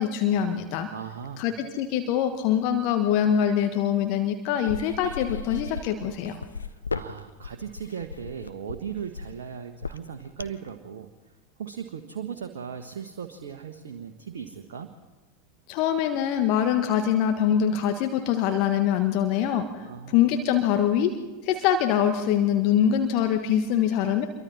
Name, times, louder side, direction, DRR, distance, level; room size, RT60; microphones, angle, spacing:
voice 1, 0.0-0.9 1.4-6.4 15.7-19.7 20.1-21.1 21.4-24.3, left 9 dB, 45° left, 6 dB, 1.4 m, -24 dB
voice 2, 0.9-1.4 6.6-11.1 11.6-14.9 19.8-20.3, right 7 dB, 60° right, 5 dB, 1.3 m, -38 dB
sound 1, 4.6-10.7, left 4 dB, 75° left, 0.8 m, -36 dB
27.0 x 23.0 x 4.3 m, 1.2 s
figure-of-eight pair, 85°, 0 cm